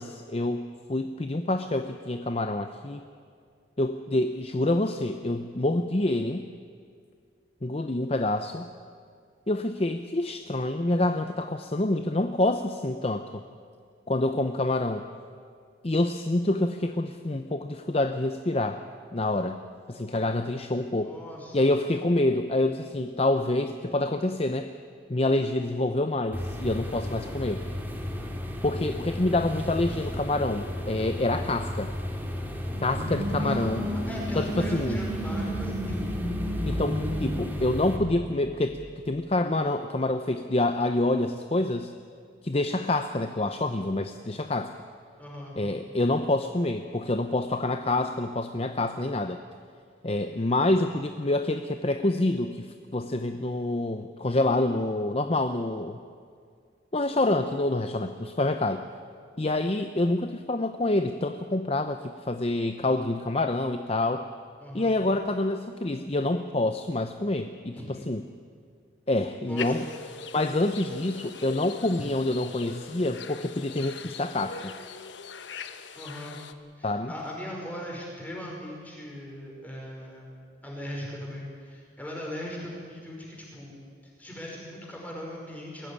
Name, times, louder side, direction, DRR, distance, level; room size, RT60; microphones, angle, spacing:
voice 1, 0.0-3.0 3.8-6.5 7.6-8.7 9.5-13.4 14.1-15.1 15.8-18.8 19.1-19.6 19.9-21.1 21.5-24.7 25.1-27.6 28.6-31.9 32.8-33.9 34.3-35.0 36.7-38.8 39.0-41.9 42.4-44.8 45.6-49.4 50.0-56.0 56.9-58.8 59.4-64.3 64.7-67.8 68.1-68.2 69.1-69.8 70.3-74.7 76.8-77.1, left 2 dB, 30° left, 8 dB, 0.7 m, -27 dB
voice 2, 21.0-21.6 33.3-36.2 45.2-45.6 64.6-65.0 67.7-68.1 69.3-69.9 75.9-76.4 76.7-80.3 80.6-83.7 84.0-85.9, equal, 10° left, -2 dB, 5.2 m, -39 dB
sound 1, 26.3-38.0, left 1 dB, 10° right, 2.3 m, -34 dB
sound 2, 32.7-39.2, equal, 65° right, 2.3 m, -33 dB
sound 3, 69.6-76.5, left 5 dB, 70° left, 1.1 m, -41 dB
21.5 x 15.5 x 9.9 m, 2.2 s
head